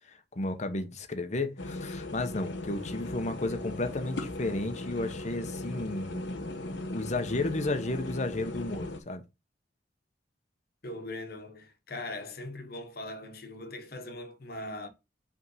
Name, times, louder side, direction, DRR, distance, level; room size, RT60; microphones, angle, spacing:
voice 1, 0.1-9.2, left 2 dB, 40° left, 0.9 m, -33 dB
sound 1, 1.6-9.0, left 2 dB, 85° left, 1.0 m, -38 dB
voice 2, 10.8-14.9, left 2 dB, 60° left, 1.2 m, -40 dB
5.4 x 3.6 x 5.5 m
head